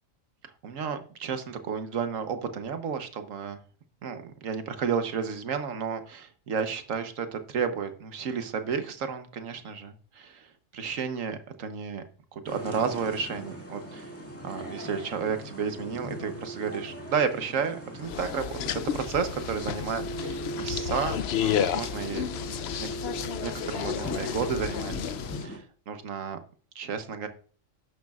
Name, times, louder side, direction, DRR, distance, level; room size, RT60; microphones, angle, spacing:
voice 1, 0.6-3.6 4.0-12.0 12.3-14.1 14.4-22.2 22.8-22.9 23.4-25.0 25.4-26.4 26.7-27.3, right 6 dB, 85° right, 9 dB, 1.4 m, -32 dB
sound 1, 12.4-25.6, right 2 dB, 10° left, 1.9 m, -40 dB
sound 2, 18.0-25.4, left 10 dB, 65° left, 0.7 m, -32 dB
11.5 x 10.5 x 2.4 m, 0.42 s
omnidirectional pair, 1.3 m